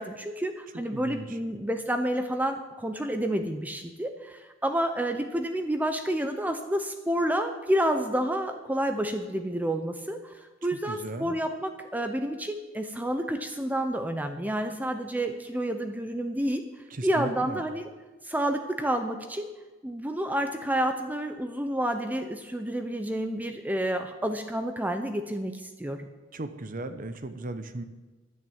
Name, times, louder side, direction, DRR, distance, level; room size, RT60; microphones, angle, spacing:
voice 1, 0.0-16.6 17.0-17.9 18.2-19.5 19.8-26.1, right 1 dB, 10° right, 6 dB, 0.7 m, -29 dB
voice 2, 0.9-1.4 10.9-11.4 16.9-17.6 26.3-27.8, right 2 dB, 40° right, 10 dB, 0.8 m, -36 dB
11.0 x 9.2 x 8.7 m, 1.2 s
head